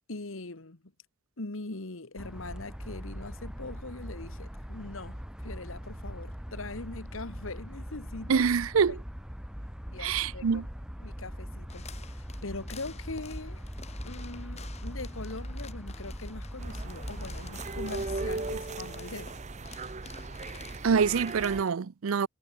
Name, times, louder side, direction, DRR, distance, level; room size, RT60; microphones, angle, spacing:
voice 1, 0.1-0.8 1.4-8.5 8.9-9.0 9.9-10.7 11.0-13.6 14.0-19.3, left 2 dB, 75° left, 1.6 m, -42 dB
sound 1, 2.2-18.6, equal, 5° right, 1.4 m, -41 dB
voice 2, 8.3-9.0 10.0-10.7 20.8-22.3, right 6 dB, 80° right, 0.5 m, -25 dB
sound 2, 11.7-21.7, left 6 dB, 30° left, 4.8 m, -51 dB
sound 3, 16.6-21.6, right 3 dB, 35° right, 0.7 m, -38 dB
head